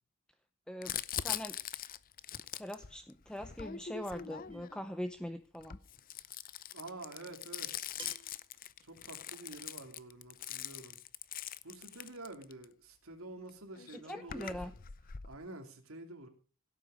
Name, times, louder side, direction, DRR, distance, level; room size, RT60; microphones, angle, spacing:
Crumpling crinkling, 0.8-4.9 5.5-12.6 13.5-13.6 13.8-15.3, left 10 dB, 45° left, 0.6 m, -42 dB
voice 1, 1.2-1.6 2.5-5.8 14.0-14.7, equal, 5° left, 0.8 m, -42 dB
sound 1, 4.5-4.9 6.4-6.5 8.0-8.5, right 5 dB, 25° right, 2.3 m, -52 dB
voice 2, 6.7-7.8 8.8-11.0 11.6-14.7 15.2-16.3, right 2 dB, 85° right, 2.8 m, -48 dB
16.5 x 8.3 x 5.1 m
head